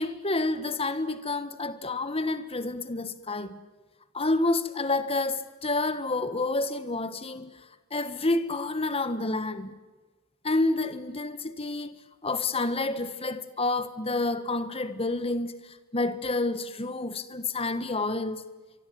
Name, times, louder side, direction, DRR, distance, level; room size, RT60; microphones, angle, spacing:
voice 1, 0.0-3.6 4.1-7.6 7.9-9.7 10.4-18.4, left 2 dB, 25° left, 1.5 m, -29 dB
25.5 x 23.5 x 9.3 m
head